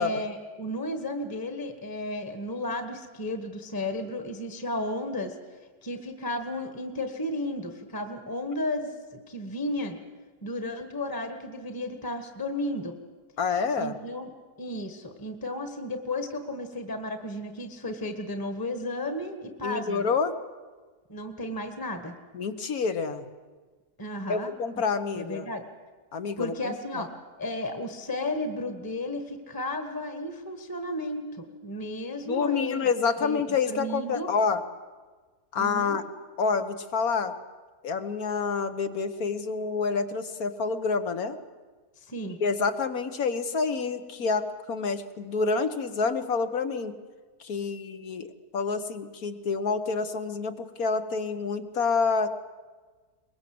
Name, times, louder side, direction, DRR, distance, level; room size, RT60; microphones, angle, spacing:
voice 1, 0.0-5.4 5.8-10.0 10.4-12.9 13.7-14.3 14.6-20.0 21.1-22.1 24.0-24.5 25.2-25.6 26.4-27.1 27.4-32.9 33.2-34.3 35.5-36.0 42.0-42.4, left 1 dB, 15° left, 6 dB, 1.3 m, -33 dB
voice 2, 13.4-14.0 19.6-20.3 22.3-23.3 24.3-25.5 26.1-27.0 32.3-34.6 35.5-36.0 36.4-37.3 37.8-41.4 42.4-46.9 47.4-52.3, left 5 dB, 65° left, 9 dB, 1.7 m, -28 dB
23.0 x 21.0 x 7.8 m, 1.4 s
omnidirectional pair, 1.7 m